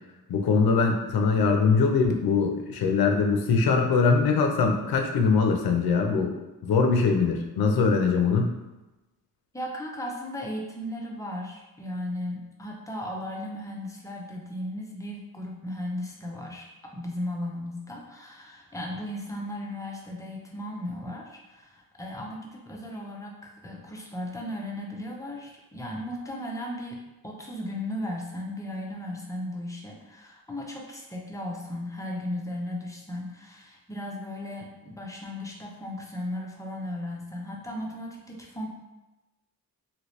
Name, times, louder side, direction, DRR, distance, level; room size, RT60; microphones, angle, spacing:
voice 1, 0.3-6.3 6.6-8.5, left 4 dB, 75° left, 3 dB, 0.6 m, -22 dB
voice 2, 9.5-16.7 16.9-23.3 23.6-27.0 27.2-38.7, left 1 dB, 10° left, -1 dB, 0.5 m, -36 dB
2.9 x 2.8 x 3.1 m, 1.1 s
wide cardioid pair, 135°, 37 cm